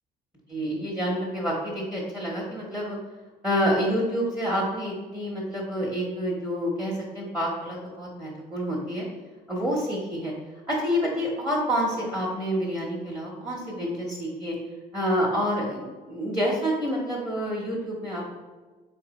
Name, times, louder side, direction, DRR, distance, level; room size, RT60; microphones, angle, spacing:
voice 1, 0.5-3.0 3.4-9.0 9.5-10.3 10.7-14.6 14.9-18.3, equal, 5° right, -3 dB, 0.9 m, -28 dB
3.8 x 3.3 x 4.0 m, 1.4 s
cardioid pair, 110°, 17 cm